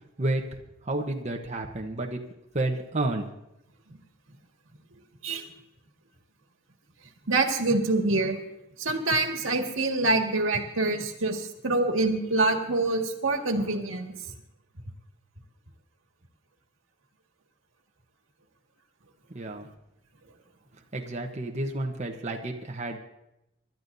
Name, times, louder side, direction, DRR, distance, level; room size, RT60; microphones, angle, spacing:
voice 1, 0.9-2.2 2.5-3.3 19.3-19.7 20.9-23.0, right 2 dB, 35° right, 2 dB, 1.1 m, -30 dB
voice 2, 7.3-8.4 8.8-14.1, right 2 dB, 90° right, 3 dB, 1.9 m, -25 dB
26.5 x 12.0 x 2.7 m, 0.86 s
head